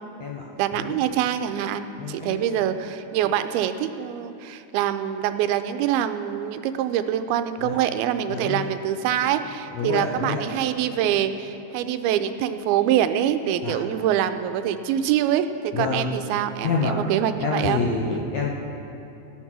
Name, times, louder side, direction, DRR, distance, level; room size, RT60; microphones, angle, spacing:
voice 1, 0.6-17.8 18.1-18.2, right 10 dB, 85° right, 9 dB, 2.5 m, -25 dB
voice 2, 2.0-2.7 7.6-7.8 8.3-8.7 9.7-10.4 13.6-13.8 15.7-16.1 16.6-17.0 17.4-18.5, left 4 dB, 70° left, -2 dB, 1.7 m, -27 dB
16.5 x 10.0 x 6.1 m, 2.8 s
omnidirectional pair, 4.4 m